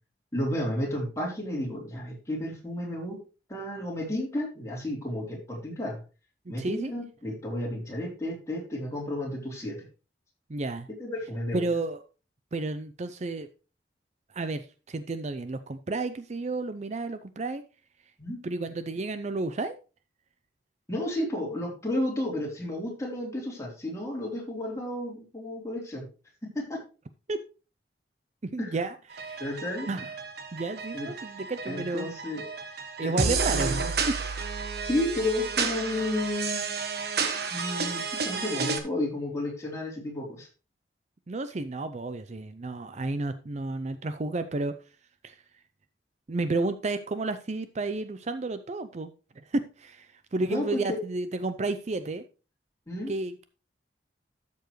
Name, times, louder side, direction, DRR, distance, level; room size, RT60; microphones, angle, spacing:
voice 1, 0.3-3.2 3.5-6.0 6.5-9.8 11.0-11.6 18.2-18.4 20.9-26.0 26.6-26.8 28.6-28.7 29.4-29.9 30.9-31.1 31.6-32.4 33.0-33.9 34.8-36.8 37.5-40.5 50.4-51.0 52.9-53.1, left 1 dB, 15° left, -2 dB, 3.5 m, -32 dB
voice 2, 6.5-6.9 10.5-10.9 11.5-12.0 12.5-13.5 14.3-17.6 18.4-19.8 27.3-27.4 28.4-29.4 29.9-30.1 30.5-32.1 33.0-34.2 41.3-44.7 45.2-45.4 46.3-52.2 53.1-53.4, right 2 dB, 40° right, 11 dB, 0.5 m, -32 dB
sound 1, 29.1-38.8, right 5 dB, 60° right, 1.3 m, -31 dB
12.5 x 6.9 x 3.1 m, 0.33 s
head